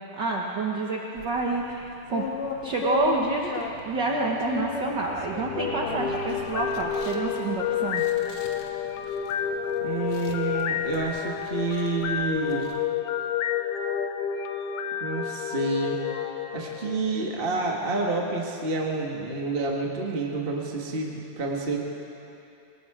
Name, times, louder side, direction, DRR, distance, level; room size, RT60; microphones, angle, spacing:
voice 1, 0.2-2.3 2.6-8.0, right 3 dB, 65° right, -1 dB, 1.0 m, -28 dB
sound 1, 1.2-12.8, left 5 dB, 55° left, 1.9 m, -37 dB
sound 2, 5.3-17.4, left 8 dB, 90° left, 1.3 m, -30 dB
voice 2, 9.8-12.7 15.0-16.0 16.5-21.8, right 3 dB, 30° right, -1 dB, 1.0 m, -29 dB
26.5 x 20.0 x 4.9 m, 2.7 s
omnidirectional pair, 3.8 m